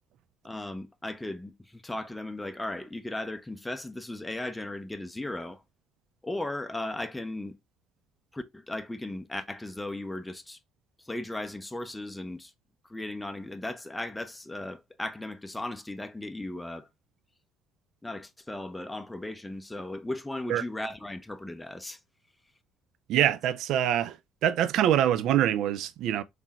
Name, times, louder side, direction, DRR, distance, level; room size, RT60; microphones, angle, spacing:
voice 1, 0.4-5.6 6.2-7.6 8.3-10.6 11.0-12.5 12.9-16.9 18.0-22.0, left 1 dB, 10° left, 0.5 m, -36 dB
voice 2, 23.1-24.2 24.4-26.2, right 11 dB, 65° right, 0.3 m, -24 dB
3.6 x 3.2 x 2.8 m
hypercardioid pair, 55°, 0 cm